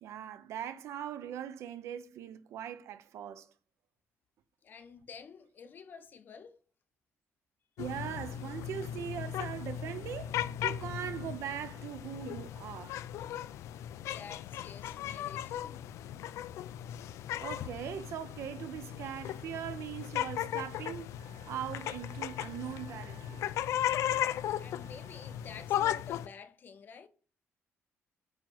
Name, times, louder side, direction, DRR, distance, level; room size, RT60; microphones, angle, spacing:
voice 1, 0.0-3.5 7.8-10.4 10.6-13.0 17.4-21.1 21.5-23.5, right 9 dB, 75° right, 0.7 m, -40 dB
voice 2, 4.6-6.6 13.9-16.2 24.6-27.1, left 6 dB, 40° left, 0.7 m, -50 dB
sound 1, 7.8-26.3, left 11 dB, 90° left, 0.3 m, -37 dB
Wind instrument woodwind instrument, 21.2-25.5, right 6 dB, 45° right, 1.1 m, -59 dB
9.0 x 3.0 x 5.4 m
cardioid pair, 155°, 5 cm